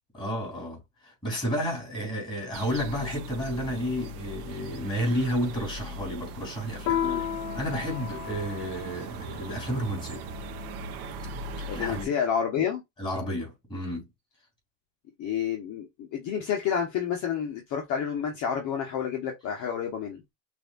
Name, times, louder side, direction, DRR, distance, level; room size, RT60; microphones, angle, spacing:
voice 1, 0.1-10.2 11.3-11.4 11.7-12.1 13.0-14.1, equal, 10° left, 3.1 m, -31 dB
sound 1, 2.5-12.1, right 2 dB, 80° right, 0.9 m, -39 dB
Piano, 6.9-11.8, left 10 dB, 55° left, 0.7 m, -35 dB
voice 2, 11.7-12.8 15.2-20.2, left 8 dB, 40° left, 1.0 m, -29 dB
6.1 x 2.6 x 2.4 m
supercardioid pair, 140°, 44 cm